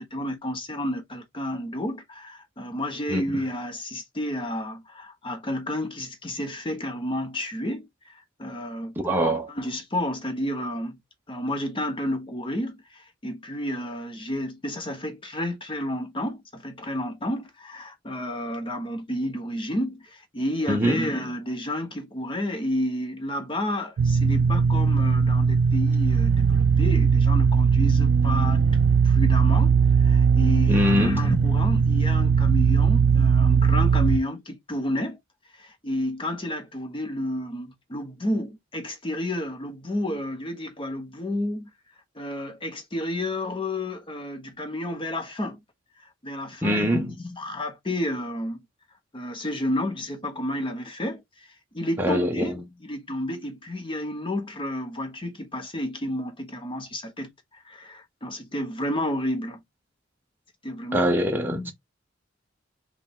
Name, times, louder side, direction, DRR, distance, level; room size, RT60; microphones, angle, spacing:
voice 1, 0.0-8.9 9.5-11.0 11.3-28.6 29.0-35.2 35.6-41.7 42.1-45.6 46.0-48.6 49.1-51.2 51.7-59.6 60.6-61.1 61.6-61.7, left 1 dB, 25° left, 0.9 m, -31 dB
voice 2, 9.0-9.5 20.7-21.0 30.7-31.3 46.6-47.1 52.0-52.5 60.9-61.7, equal, 10° right, 0.6 m, -23 dB
sound 1, 24.0-34.2, right 6 dB, 60° right, 0.3 m, -19 dB
4.4 x 2.4 x 3.5 m
head